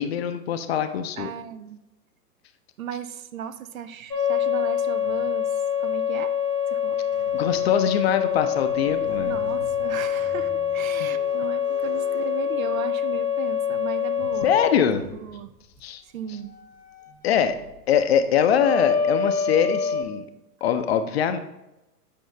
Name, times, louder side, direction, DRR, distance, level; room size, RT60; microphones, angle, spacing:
voice 1, 0.0-1.3 7.3-9.3 11.0-11.1 14.4-15.0 15.8-16.0 17.2-17.6 17.9-20.2 20.6-21.4, left 8 dB, 40° left, 9 dB, 0.6 m, -23 dB
voice 2, 1.2-1.8 2.8-6.4 6.7-7.0 9.1-14.5 15.0-15.5 16.0-16.5 17.1-17.2, right 8 dB, 60° right, 12 dB, 0.6 m, -36 dB
sound 1, 4.1-14.8 18.6-20.0, left 8 dB, 90° left, 1.0 m, -25 dB
Squeak, 6.9-13.2 14.1-19.3, equal, 5° right, 0.4 m, -47 dB
8.4 x 5.2 x 3.2 m, 0.94 s
figure-of-eight pair, 110°, 48 cm